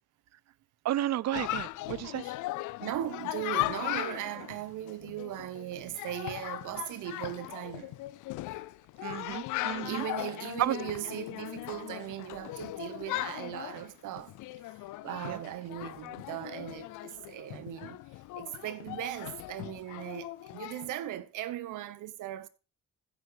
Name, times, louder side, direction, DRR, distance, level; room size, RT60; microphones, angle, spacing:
voice 1, 0.8-2.2 9.0-10.0 10.6-10.8 15.3-15.4, right 13 dB, 60° right, 0.6 m, -32 dB
Chatter, 1.3-20.9, left 17 dB, 85° left, 0.5 m, -38 dB
voice 2, 2.8-8.0 9.8-14.4 15.0-18.0 18.4-22.5, right 13 dB, 85° right, 1.1 m, -38 dB
15.0 x 6.6 x 4.8 m
cardioid pair, 90°, 30 cm